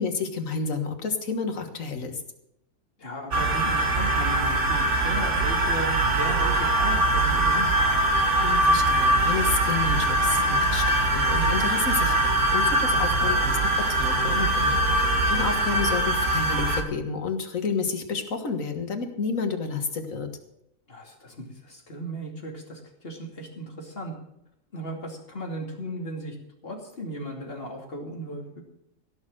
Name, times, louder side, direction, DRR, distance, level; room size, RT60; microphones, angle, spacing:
voice 1, 0.0-2.2 8.4-20.3, left 5 dB, 75° left, 6 dB, 2.0 m, -30 dB
voice 2, 3.0-7.7 12.9-13.4 20.9-24.1 24.7-26.3 26.6-28.6, right 1 dB, 45° left, 1 dB, 2.9 m, -36 dB
sound 1, 3.3-16.8, right 1 dB, 60° right, 2.0 m, -22 dB
16.5 x 6.6 x 7.8 m, 0.81 s
omnidirectional pair, 1.4 m